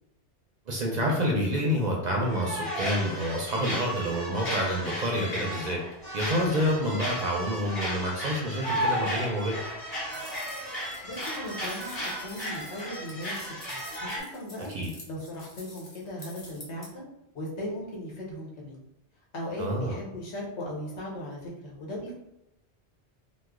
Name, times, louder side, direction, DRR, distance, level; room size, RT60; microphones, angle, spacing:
voice 1, 0.7-5.8 6.1-9.6 14.7-14.9 19.6-20.0, equal, 50° right, -1 dB, 0.6 m, -28 dB
sound 1, 2.3-14.2, equal, 65° left, 1.7 m, -34 dB
sound 2, 10.1-16.9, left 2 dB, 45° left, 0.8 m, -48 dB
voice 2, 11.0-14.7 15.1-17.0 17.3-18.8 19.3-22.2, left 1 dB, 80° left, -3 dB, 1.2 m, -38 dB
3.1 x 2.0 x 3.5 m, 0.86 s
omnidirectional pair, 1.1 m